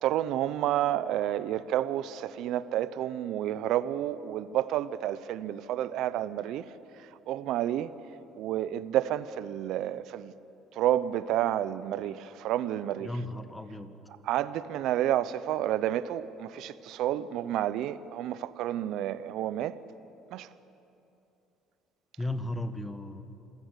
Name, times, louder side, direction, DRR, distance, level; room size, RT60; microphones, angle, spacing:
voice 1, 0.0-6.6 7.3-7.9 8.4-10.3 10.7-13.1 14.2-19.8 20.3-20.5, right 12 dB, 70° right, 0.8 m, -30 dB
voice 2, 13.0-13.9 22.2-23.2, left 1 dB, 10° left, 1.6 m, -35 dB
26.5 x 15.0 x 8.3 m
supercardioid pair, 80°, 0 cm